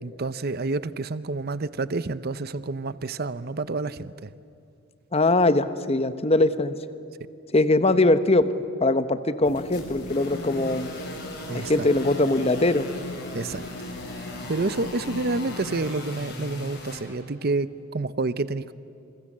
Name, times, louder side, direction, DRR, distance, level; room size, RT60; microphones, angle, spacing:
voice 1, 0.0-4.3 11.5-11.9 13.3-13.6 14.5-18.7, right 3 dB, 45° right, 15 dB, 0.7 m, -29 dB
voice 2, 5.1-6.7 7.5-8.5 8.8-10.9 11.5-12.9, left 2 dB, 30° left, 12 dB, 0.9 m, -21 dB
sound 1, 9.4-15.9, left 2 dB, 90° left, 1.5 m, -39 dB
sound 2, 9.5-17.0, left 1 dB, 50° left, 5.7 m, -39 dB
28.0 x 26.5 x 7.4 m, 2.6 s
head